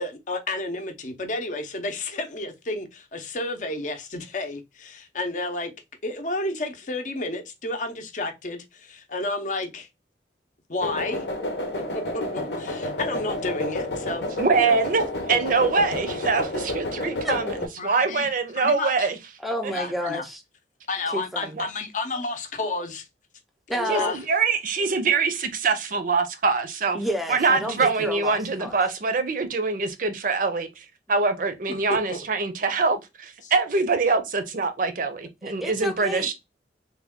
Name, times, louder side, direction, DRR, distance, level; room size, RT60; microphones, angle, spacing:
voice 1, 0.0-5.7 6.0-9.9 10.7-11.3 11.8-14.3 14.6-14.8 17.8-18.3 18.5-19.1 19.7-20.2 20.9-23.1 23.7-24.2 27.5-27.8 31.9-32.2 33.4-33.5, left 2 dB, 45° left, 0.6 m, -31 dB
sound 1, 10.8-17.7, left 1 dB, 75° left, 0.8 m, -30 dB
voice 2, 14.4-17.5 17.8-19.2 19.6-19.7 21.6-21.7 23.9-27.0 27.3-36.3, right 4 dB, 50° right, 0.5 m, -24 dB
voice 3, 19.4-20.4 21.1-21.6 23.7-24.1 26.9-28.8 35.4-36.3, equal, ahead, 0.5 m, -30 dB
3.4 x 2.2 x 3.5 m
head